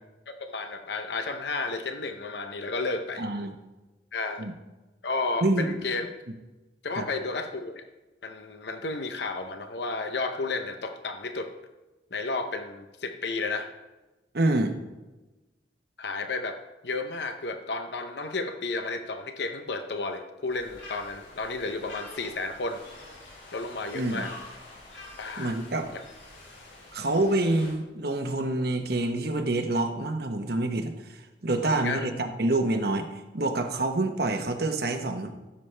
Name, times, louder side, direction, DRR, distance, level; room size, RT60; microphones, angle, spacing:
voice 1, 0.3-3.2 4.1-4.5 5.0-6.1 6.8-7.8 8.2-11.5 12.1-13.7 16.0-16.6 16.8-22.8 23.5-24.3 25.2-25.6 25.9-26.0 31.6-32.1, left 3 dB, 65° left, 7 dB, 0.8 m, -32 dB
voice 2, 3.2-3.5 4.4-4.5 5.4-5.8 7.0-7.1 14.3-14.8 23.9-24.2 25.4-25.9 26.9-33.1 33.3-35.3, right 2 dB, 55° right, 6 dB, 1.0 m, -27 dB
sound 1, 20.5-27.7, left 2 dB, 80° left, 3.4 m, -47 dB
15.5 x 7.2 x 3.3 m, 1.1 s
head